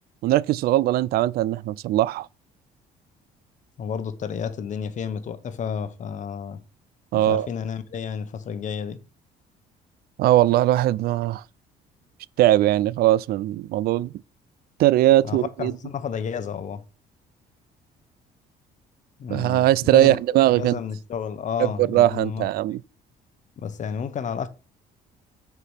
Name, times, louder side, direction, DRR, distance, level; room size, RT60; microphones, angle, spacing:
voice 1, 0.2-2.3 7.1-7.5 10.2-11.4 12.4-14.1 14.8-15.7 19.3-20.8 21.6-22.8, right 14 dB, 65° right, 0.4 m, -20 dB
voice 2, 3.8-6.6 7.1-9.0 15.2-16.8 19.2-22.7 23.6-24.5, left 7 dB, 45° left, 1.1 m, -31 dB
6.5 x 4.7 x 5.6 m
cardioid pair, 110°, 17 cm